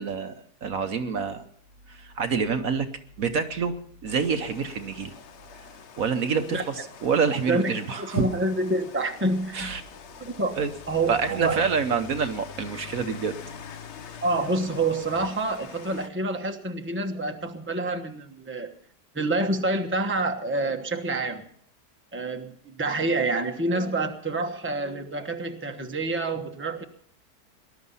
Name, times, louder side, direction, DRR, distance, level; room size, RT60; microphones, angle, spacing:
voice 1, 0.0-1.4 1.9-2.9 3.2-3.8 4.0-5.1 6.0-8.3 9.5-9.8 10.6-10.7 11.1-13.4, right 5 dB, 60° right, 8 dB, 1.3 m, -27 dB
Rain, 4.1-16.1, left 6 dB, 50° left, 1.0 m, -44 dB
voice 2, 8.0-9.7 10.2-10.6 10.9-11.6 14.2-18.7 19.1-21.4 22.1-26.9, right 2 dB, 10° right, 5 dB, 1.0 m, -27 dB
19.5 x 12.0 x 5.5 m, 0.63 s
omnidirectional pair, 1.8 m